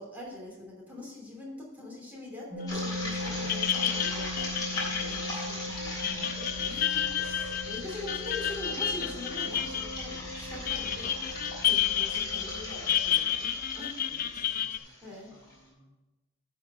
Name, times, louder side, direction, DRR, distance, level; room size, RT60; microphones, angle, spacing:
voice 1, 0.0-6.0 6.5-14.0 14.3-14.6 15.0-15.3, left 2 dB, 10° right, -4 dB, 2.8 m, -44 dB
sound 1, 2.5-13.1, left 1 dB, 40° right, 2.3 m, -40 dB
sound 2, 2.7-3.0 3.3-14.8, left 10 dB, 45° left, 0.4 m, -31 dB
sound 3, 2.7-15.5, left 1 dB, 20° left, 3.4 m, -39 dB
voice 2, 5.9-6.4 6.9-7.2 14.1-15.0 15.3-15.9, left 2 dB, 75° left, 1 dB, 1.5 m, -54 dB
11.5 x 4.6 x 5.9 m, 1.1 s
head